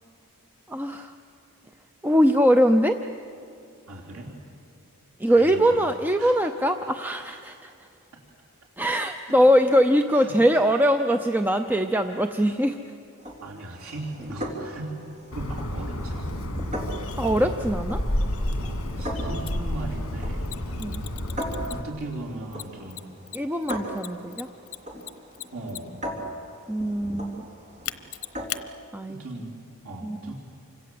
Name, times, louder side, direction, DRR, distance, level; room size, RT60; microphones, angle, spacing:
voice 1, 0.7-1.1 2.0-3.0 5.2-7.7 8.8-12.8 17.2-18.0 20.8-21.0 23.3-24.5 26.7-27.4 28.9-29.2 30.0-30.3, equal, 10° right, 6 dB, 0.6 m, -22 dB
voice 2, 3.9-4.5 5.3-5.9 6.2-6.5 9.3-9.5 10.1-10.5 13.4-14.9 15.3-16.5 18.6-20.5 21.7-23.0 25.5-26.0 29.1-30.3, right 2 dB, 75° right, -2 dB, 3.5 m, -38 dB
sound 1, 13.2-28.8, equal, 35° right, 3.5 m, -39 dB
Bird, 15.3-21.8, left 1 dB, 65° left, 2.4 m, -30 dB
Mechanisms, 19.5-19.6 20.4-22.0 22.5-26.1 27.8-28.6, left 14 dB, 80° left, 0.9 m, -37 dB
29.0 x 25.5 x 7.8 m, 2.5 s
head